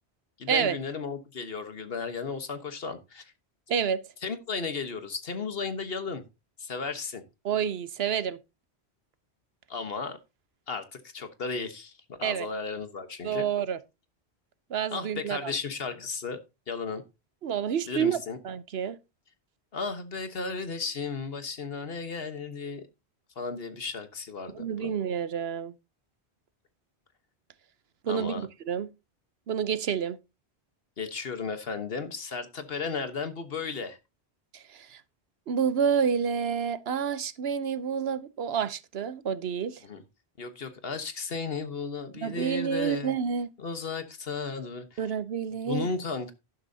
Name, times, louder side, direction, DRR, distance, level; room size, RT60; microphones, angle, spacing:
voice 1, 0.4-3.2 4.2-6.2 6.6-7.2 9.7-10.2 10.7-13.4 14.9-16.4 16.7-17.0 17.9-18.4 19.7-22.8 23.4-24.9 28.1-28.5 31.0-34.0 39.8-40.0 40.4-43.1 43.6-45.0 45.7-46.3, left 4 dB, 60° left, 1.4 m, -34 dB
voice 2, 3.7-4.0 7.4-8.4 12.2-12.5 13.2-13.8 14.7-15.5 17.4-18.2 18.4-19.0 24.5-25.7 28.0-28.9 29.5-30.2 34.5-35.0 35.5-39.8 42.2-43.5 45.0-45.9, right 7 dB, 70° right, 1.0 m, -29 dB
11.5 x 11.0 x 2.8 m
omnidirectional pair, 1.1 m